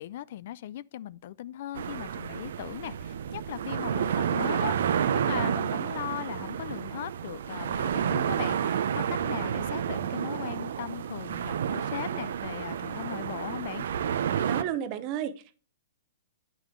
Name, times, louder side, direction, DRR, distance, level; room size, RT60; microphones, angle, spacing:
voice 1, 0.0-13.9, left 13 dB, 55° left, 0.3 m, -38 dB
sound 1, 1.7-14.6, right 8 dB, 70° right, 0.7 m, -30 dB
voice 2, 14.5-15.6, right 10 dB, 35° right, 0.8 m, -32 dB
8.6 x 6.1 x 3.7 m
hypercardioid pair, 145°, 0 cm